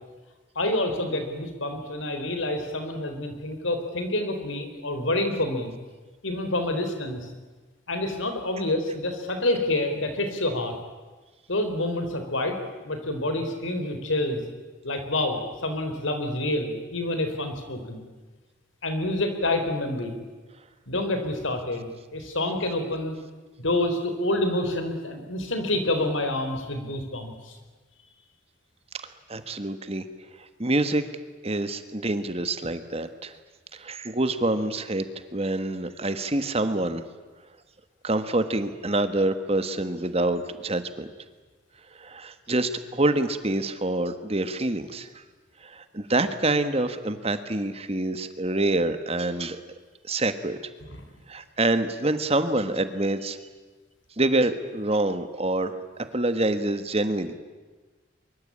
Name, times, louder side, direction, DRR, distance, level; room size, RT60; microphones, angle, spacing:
voice 1, 0.6-5.7 6.2-7.3 7.9-10.8 11.5-14.4 14.8-18.1 18.8-20.2 20.9-23.2 23.6-27.6 50.9-51.0, left 1 dB, 80° left, 7 dB, 4.1 m, -28 dB
voice 2, 29.3-30.1 30.4-31.0 31.4-33.4 33.7-35.1 35.3-37.0 38.0-41.1 41.9-45.2 45.6-49.6 50.0-50.6 51.3-53.4 54.2-57.3, right 2 dB, 30° right, 10 dB, 1.4 m, -26 dB
24.0 x 23.5 x 8.7 m, 1.3 s
head